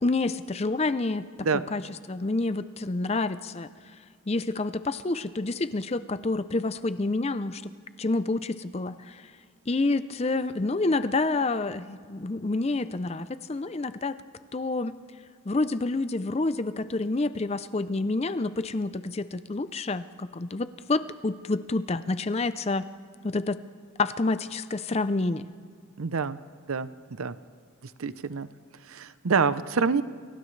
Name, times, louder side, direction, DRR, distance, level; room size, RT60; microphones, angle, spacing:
voice 1, 0.0-1.3 1.5-3.7 4.3-7.7 8.0-9.3 9.7-14.2 14.5-15.0 15.5-22.9 23.2-23.6 24.0-25.5, left 3 dB, 30° left, 13 dB, 0.5 m, -28 dB
voice 2, 26.0-26.4 26.7-26.9 27.2-27.3 28.0-28.5 28.9-30.0, right 5 dB, 85° right, 14 dB, 0.7 m, -26 dB
29.0 x 28.5 x 3.3 m, 2.1 s
head